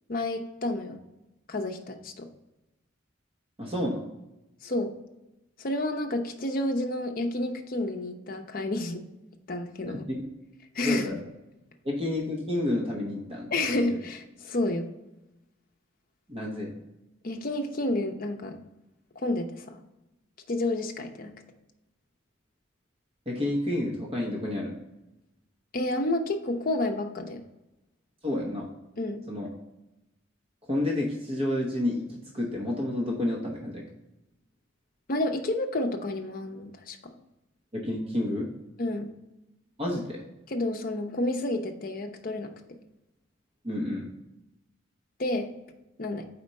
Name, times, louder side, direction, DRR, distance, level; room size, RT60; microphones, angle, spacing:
voice 1, 0.1-1.0 1.5-2.3 4.6-4.9 5.6-9.0 9.5-10.0 10.7-11.2 13.5-14.9 17.2-18.6 19.2-19.8 20.5-21.3 25.7-27.4 29.0-29.2 35.1-37.1 38.8-39.1 40.5-42.5 45.2-45.5 46.0-46.3, left 2 dB, 45° left, 4 dB, 0.6 m, -30 dB
voice 2, 3.6-4.1 9.8-10.2 10.8-11.2 11.8-13.5 13.8-13.9 16.3-16.7 23.3-24.7 28.2-28.7 29.3-29.5 30.7-33.8 37.7-38.5 39.8-40.2 43.6-44.1, left 1 dB, 30° right, -2 dB, 0.9 m, -30 dB
4.4 x 4.2 x 5.2 m, 0.97 s
head